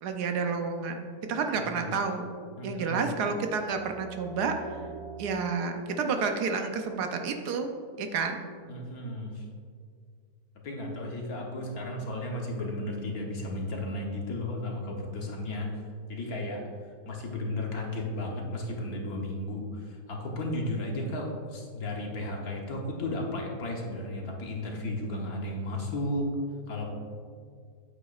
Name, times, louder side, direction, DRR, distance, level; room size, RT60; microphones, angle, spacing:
voice 1, 0.0-2.3 2.6-4.5 5.2-7.7 8.0-8.4, right 5 dB, 70° right, 5 dB, 1.2 m, -30 dB
voice 2, 1.5-2.0 2.6-3.1 8.7-9.5 10.6-15.8 16.1-26.3 26.7-26.9, left 1 dB, 60° left, 0 dB, 1.5 m, -34 dB
sound 1, 3.3-8.7, right 5 dB, 35° left, 2.3 m, -47 dB
8.8 x 8.2 x 2.4 m, 2.1 s
omnidirectional pair, 1.8 m